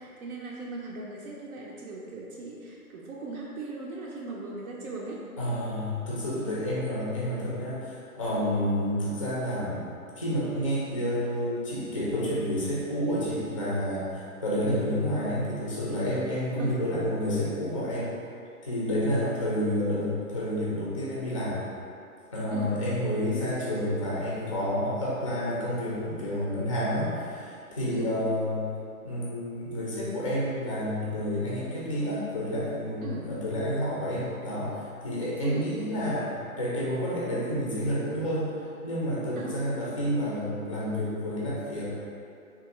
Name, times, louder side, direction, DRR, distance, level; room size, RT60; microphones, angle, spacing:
voice 1, 0.0-5.3 16.6-16.8 22.5-22.7 27.9-28.1 33.0-33.3 35.4-35.7 39.4-39.6, right 3 dB, 80° right, -3 dB, 0.6 m, -39 dB
voice 2, 5.4-9.8 10.2-18.1 18.6-21.6 22.3-28.7 29.0-36.3 36.6-38.5 38.8-41.8, equal, 25° left, -7 dB, 0.3 m, -29 dB
3.3 x 2.4 x 2.8 m, 2.5 s
hypercardioid pair, 140°, 43 cm